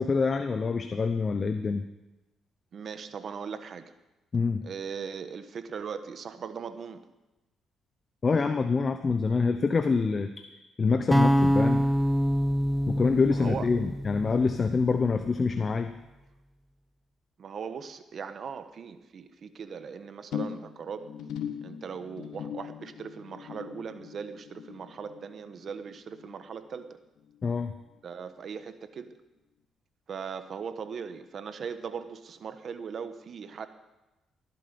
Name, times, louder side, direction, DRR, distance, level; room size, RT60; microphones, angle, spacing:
voice 1, 0.0-1.8 4.3-4.6 8.2-10.4 10.8-11.8 12.9-15.9 27.4-27.7, left 4 dB, 35° left, 8 dB, 0.8 m, -26 dB
voice 2, 2.7-3.9 4.6-7.0 13.3-13.7 17.4-21.1 21.6-27.0 28.0-29.2 30.1-33.7, right 6 dB, 55° right, 10 dB, 1.1 m, -39 dB
sound 1, 11.1-15.2, equal, ahead, 0.7 m, -26 dB
sound 2, 20.3-26.9 27.2-27.6 27.9-28.0, left 8 dB, 80° left, 1.2 m, -40 dB
18.5 x 11.0 x 5.3 m, 1.0 s
cardioid pair, 90°, 0 cm